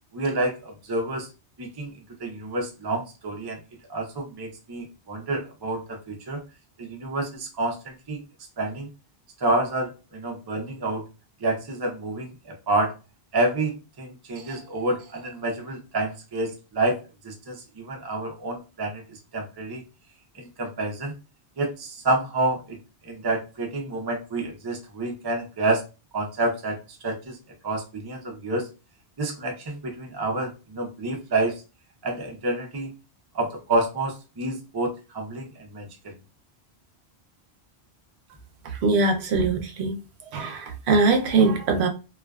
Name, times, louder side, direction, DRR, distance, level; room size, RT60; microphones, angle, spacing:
voice 1, 0.1-1.3 1.6-1.9 2.2-3.6 3.9-6.4 6.8-8.2 8.6-8.9 9.4-11.0 11.4-12.9 13.3-17.0 17.2-19.8 20.4-21.1 21.6-22.8 23.0-25.8 26.1-26.8 27.0-27.4 27.6-28.7 29.2-31.5 32.0-32.9 33.3-36.1, right 2 dB, 30° right, 0.5 m, -28 dB
voice 2, 38.6-40.0 40.3-41.9, right 3 dB, 90° right, 0.8 m, -22 dB
2.4 x 2.3 x 2.2 m
omnidirectional pair, 1.1 m